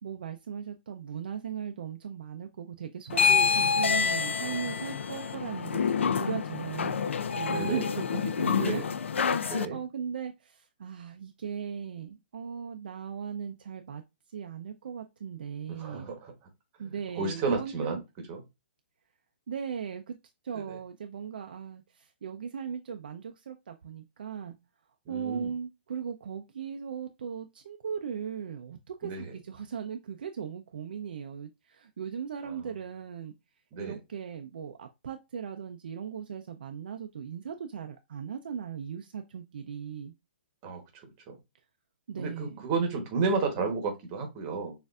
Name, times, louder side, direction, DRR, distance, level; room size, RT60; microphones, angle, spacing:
voice 1, 0.0-5.8 6.1-8.8 9.3-14.0 14.3-16.1 16.8-18.0 19.5-20.2 20.4-24.5 25.1-33.3 33.8-40.1 42.1-42.6, right 7 dB, 50° right, 0.5 m, -38 dB
sound 1, 3.1-9.7, left 6 dB, 90° left, 0.4 m, -27 dB
voice 2, 7.5-7.8 8.5-8.9 9.4-9.8 15.7-16.3 16.8-18.0 18.3-18.4 20.5-20.8 25.1-25.5 29.0-29.3 33.7-34.0 40.6-41.4 42.2-44.7, right 4 dB, 20° right, 1.0 m, -32 dB
6.4 x 2.5 x 2.4 m
hypercardioid pair, 175°, 6 cm